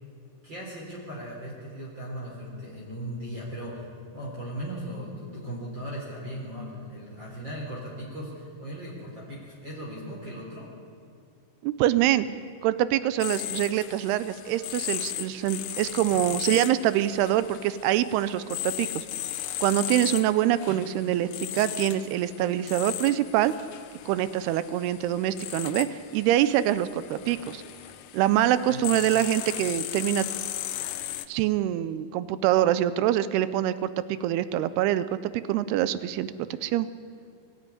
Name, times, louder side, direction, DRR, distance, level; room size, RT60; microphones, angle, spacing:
voice 1, 0.4-10.7 20.7-21.3 28.6-28.8, equal, 30° right, -5 dB, 4.3 m, -38 dB
voice 2, 11.6-12.3 12.6-19.1 19.6-23.5 24.1-27.6 28.1-30.3 31.3-33.9 34.2-36.3 36.6-36.9, right 12 dB, 90° right, 15 dB, 2.7 m, -25 dB
sound 1, 13.2-31.3, left 13 dB, 75° left, 2.2 m, -36 dB
23.0 x 13.0 x 9.9 m, 2.5 s
omnidirectional pair, 4.5 m